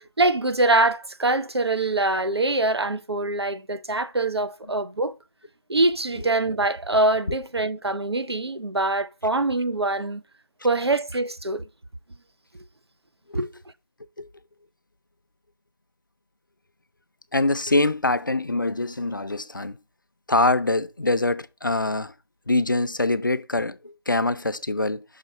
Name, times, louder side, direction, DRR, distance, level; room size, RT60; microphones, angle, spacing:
voice 1, 0.2-5.2 5.7-10.2 10.6-11.7 13.3-13.5, right 2 dB, 90° right, 0.6 m, -24 dB
voice 2, 17.3-19.8 20.3-22.1 22.5-25.0, left 2 dB, 55° left, 0.4 m, -24 dB
5.7 x 3.8 x 5.3 m
figure-of-eight pair, 175°, 13 cm